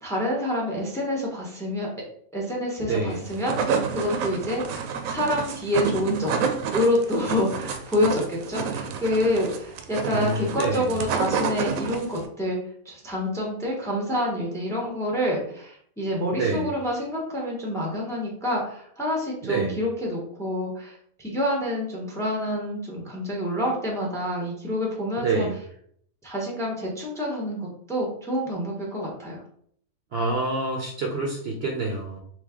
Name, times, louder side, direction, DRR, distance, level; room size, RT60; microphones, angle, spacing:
voice 1, 0.0-1.9 2.3-6.4 6.7-12.6 12.8-25.5 26.2-29.4, left 1 dB, 5° left, -2 dB, 0.8 m, -27 dB
voice 2, 2.8-3.2 10.1-10.9 16.3-16.7 19.5-19.8 25.2-25.6 30.1-32.2, right 3 dB, 60° right, 0 dB, 0.8 m, -27 dB
sound 1, 3.2-12.3, right 6 dB, 80° right, 1.0 m, -29 dB
3.3 x 3.1 x 3.5 m, 0.64 s
omnidirectional pair, 1.4 m